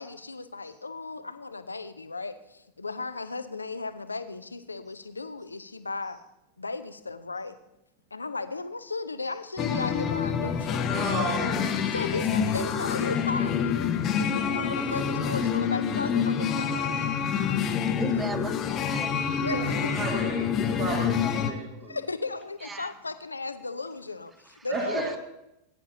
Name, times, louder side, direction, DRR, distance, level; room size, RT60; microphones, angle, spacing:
voice 1, 0.0-6.2 6.6-7.6 8.1-11.3 11.8-17.2 19.4-19.7 21.8-25.1, left 3 dB, 80° left, 12 dB, 0.6 m, -36 dB
sound 1, 9.6-21.5, left 7 dB, 30° left, 0.8 m, -27 dB
voice 2, 10.8-11.8 19.5-22.0 24.7-25.2, right 3 dB, 35° right, -2 dB, 2.1 m, -33 dB
voice 3, 17.9-19.1 22.6-22.9 24.6-25.2, right 4 dB, 15° right, 12 dB, 0.7 m, -37 dB
18.5 x 10.0 x 2.8 m, 0.86 s
figure-of-eight pair, 90°, 0 cm